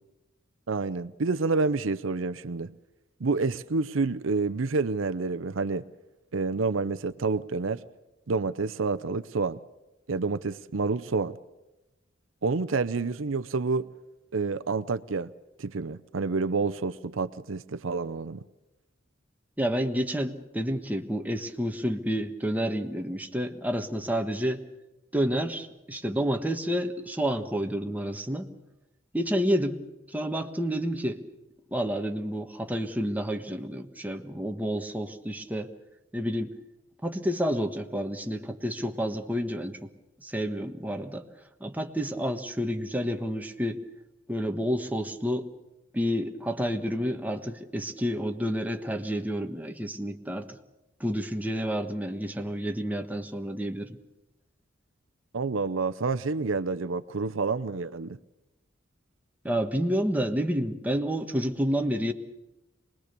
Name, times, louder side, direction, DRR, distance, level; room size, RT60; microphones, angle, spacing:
voice 1, 0.7-2.7 3.2-5.8 6.3-7.8 8.3-9.6 10.1-11.4 12.4-13.9 14.3-15.3 15.6-18.4 55.3-58.2, right 4 dB, 80° right, 0.7 m, -28 dB
voice 2, 19.6-24.6 25.1-28.5 29.1-29.8 30.1-31.2 31.7-35.7 36.1-36.5 37.0-39.9 40.2-41.3 41.6-43.8 44.3-45.5 45.9-50.6 51.0-54.0 59.4-62.1, equal, 10° right, 1.4 m, -29 dB
24.5 x 20.5 x 6.8 m
head